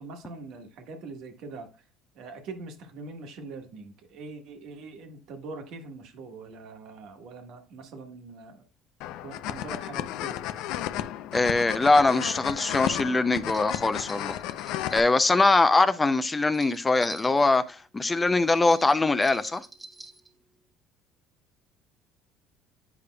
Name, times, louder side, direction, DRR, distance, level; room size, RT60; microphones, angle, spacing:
voice 1, 0.0-1.7 2.1-8.6 9.2-10.5, right 3 dB, 65° right, 1.3 m, -42 dB
sound 1, 9.0-15.0, left 12 dB, 75° left, 0.4 m, -33 dB
voice 2, 11.3-14.4 14.9-19.6, left 3 dB, 15° left, 0.4 m, -22 dB
sound 2, 12.3-12.6 13.5-15.1 16.4-17.6 18.5-20.3, right 2 dB, 5° right, 1.1 m, -46 dB
8.3 x 5.1 x 2.2 m
cardioid pair, 130°, 0 cm